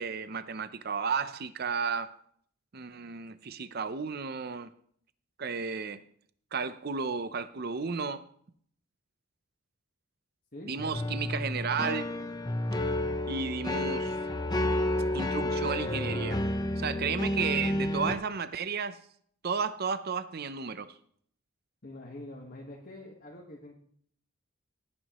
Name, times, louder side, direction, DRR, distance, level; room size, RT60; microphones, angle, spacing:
voice 1, 0.0-2.1 2.7-4.7 5.4-6.0 6.5-8.2 10.7-12.1 13.3-14.2 15.1-16.4 16.8-19.0 19.4-20.9, right 5 dB, 45° right, 0.6 m, -33 dB
sound 1, 10.8-18.1, left 1 dB, 20° left, 0.7 m, -30 dB
voice 2, 21.8-23.7, left 1 dB, 45° left, 1.5 m, -45 dB
18.5 x 9.3 x 3.0 m
head